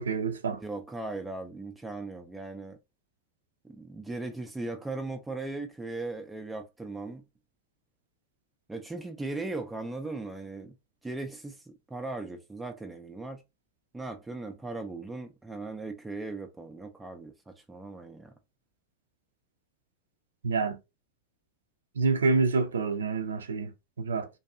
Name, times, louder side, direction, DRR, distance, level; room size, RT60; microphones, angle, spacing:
voice 1, 0.0-0.6 20.4-20.8 22.0-23.7 24.0-24.3, right 4 dB, 70° right, 0.4 m, -27 dB
voice 2, 0.6-2.8 3.6-7.2 8.7-10.8 11.0-13.4 13.9-18.3, right 2 dB, 10° right, 0.4 m, -38 dB
2.5 x 2.3 x 2.4 m
figure-of-eight pair, 90°, 0 cm